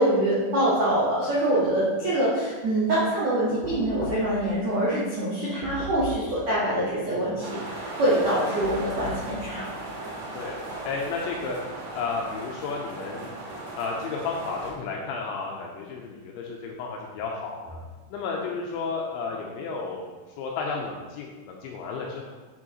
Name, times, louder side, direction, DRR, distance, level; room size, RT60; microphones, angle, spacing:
voice 1, 0.0-9.6, right 1 dB, 85° right, -9 dB, 1.5 m, -25 dB
Knock, 3.6-4.5 5.6-6.4 8.6-9.4, left 3 dB, 55° left, 3.6 m, -36 dB
sound 1, 7.4-14.7, right 2 dB, 70° right, 3.9 m, -37 dB
voice 2, 10.8-11.6 11.9-13.3 13.8-17.8 18.1-22.3, left 4 dB, 85° left, -1 dB, 2.7 m, -32 dB
8.4 x 6.2 x 3.0 m, 1.3 s
omnidirectional pair, 5.8 m